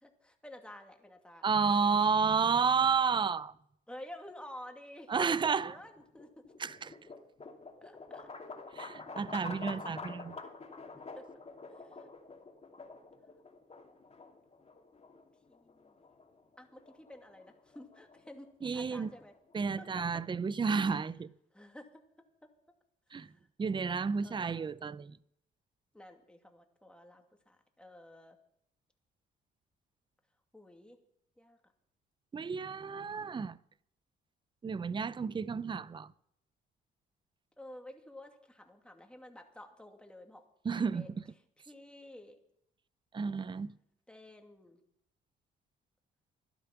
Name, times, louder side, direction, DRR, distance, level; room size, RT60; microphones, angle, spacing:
voice 1, 0.0-1.4 1.8-1.9 3.9-6.7 7.8-8.3 11.2-11.3 11.7-12.1 15.5-16.0 16.6-19.3 19.8-20.0 21.5-21.9 22.4-22.5 23.2-23.5 24.2-24.7 25.9-28.4 30.5-31.0 31.4-31.6 37.6-40.4 40.7-41.1 41.7-42.4 44.1-44.8, left 1 dB, 5° left, 2.4 m, -51 dB
voice 2, 1.4-3.5 5.1-5.8 6.6-6.9 8.7-10.4 18.6-19.1 19.5-21.3 23.1-23.3 23.6-25.2 32.3-33.6 34.6-36.1 40.6-41.1 43.1-43.7, right 5 dB, 25° right, 0.5 m, -31 dB
sound 1, 5.8-19.9, left 3 dB, 30° left, 2.7 m, -48 dB
15.0 x 12.0 x 5.9 m
cardioid pair, 90°, 20 cm